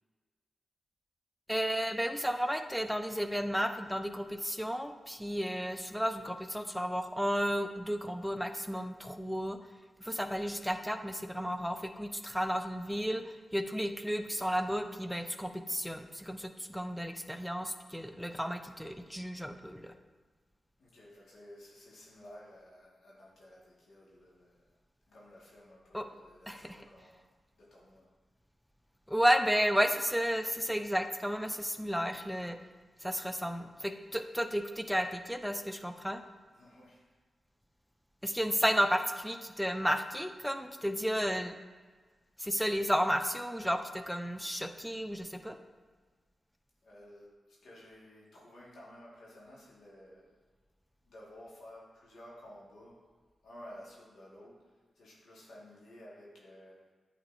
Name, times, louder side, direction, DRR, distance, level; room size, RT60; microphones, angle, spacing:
voice 1, 1.5-9.6 10.0-13.2 13.5-19.9 25.9-26.1 26.5-26.6 29.1-32.6 33.0-36.2 38.2-41.5 42.4-45.6, equal, ahead, 7 dB, 0.5 m, -32 dB
voice 2, 20.8-24.7 25.1-28.1 36.5-37.1 46.8-50.4 51.0-53.0 53.4-56.9, left 1 dB, 80° left, -6 dB, 1.8 m, -54 dB
8.5 x 4.2 x 2.7 m, 1.4 s
supercardioid pair, 45°, 0 cm